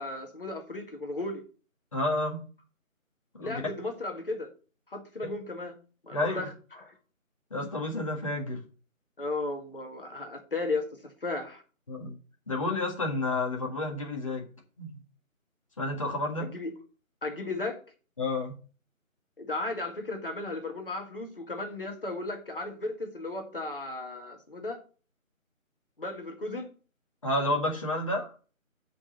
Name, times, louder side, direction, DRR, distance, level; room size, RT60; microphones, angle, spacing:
voice 1, 0.0-1.4 3.4-4.5 4.9-5.8 6.0-6.9 9.2-11.6 16.4-16.7 17.2-17.8 19.4-24.8 26.0-26.7, left 2 dB, 40° left, 4 dB, 1.8 m, -35 dB
voice 2, 1.9-2.4 3.3-3.6 5.2-5.3 6.1-6.4 7.5-8.6 11.9-12.1 12.5-14.4 14.8-15.0 15.8-16.5 18.2-18.6 27.2-28.3, left 2 dB, 25° left, 0 dB, 1.6 m, -30 dB
7.0 x 5.3 x 7.3 m, 0.37 s
figure-of-eight pair, 165°, 42 cm